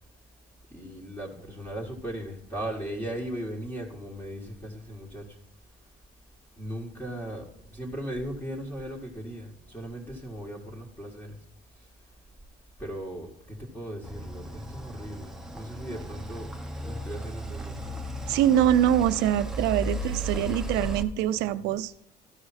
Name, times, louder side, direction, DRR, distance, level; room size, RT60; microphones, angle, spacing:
voice 1, 0.7-5.4 6.6-7.4 7.7-11.4 11.8-11.9 12.8-16.5 16.8-17.8, right 1 dB, 10° left, 1.7 m, -37 dB
sound 1, 14.0-21.0, equal, 5° right, 0.9 m, -35 dB
voice 2, 18.3-21.9, right 11 dB, 90° right, 0.5 m, -24 dB
13.0 x 4.8 x 4.2 m
cardioid pair, 110°, 17 cm